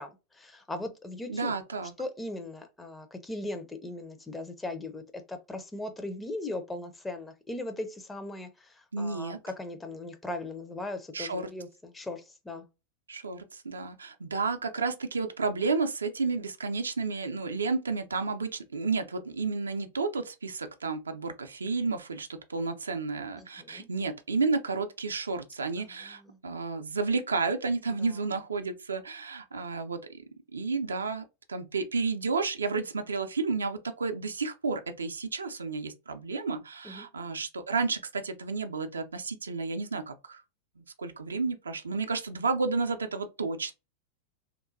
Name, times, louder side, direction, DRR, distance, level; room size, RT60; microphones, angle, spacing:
voice 1, 0.0-1.5 2.0-12.7 23.4-23.9 25.8-26.4 28.0-28.2 36.8-37.1, left 2 dB, 10° left, 0.5 m, -39 dB
voice 2, 1.3-1.9 8.9-9.4 11.1-11.5 13.1-30.2 30.5-40.4 40.8-43.7, right 4 dB, 75° right, 0.3 m, -31 dB
2.9 x 2.2 x 2.5 m
figure-of-eight pair, 90°, 0 cm